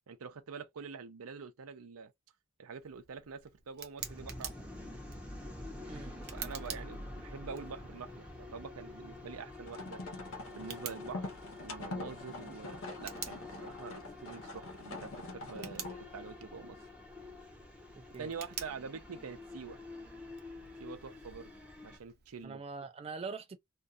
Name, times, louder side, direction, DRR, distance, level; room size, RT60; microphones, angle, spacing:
voice 1, 0.1-2.1 2.6-4.7 6.3-10.0 10.5-16.8 18.2-19.8 20.8-21.5 21.8-22.6, right 5 dB, 90° right, 0.6 m, -46 dB
Tick, 2.8-22.4, right 8 dB, 50° right, 0.7 m, -50 dB
sound 1, 4.0-22.0, left 2 dB, 5° right, 0.7 m, -48 dB
sound 2, 9.7-16.1, left 2 dB, 70° left, 0.9 m, -44 dB
voice 2, 18.0-18.3 22.4-23.6, right 4 dB, 30° right, 0.3 m, -43 dB
2.5 x 2.3 x 2.5 m
head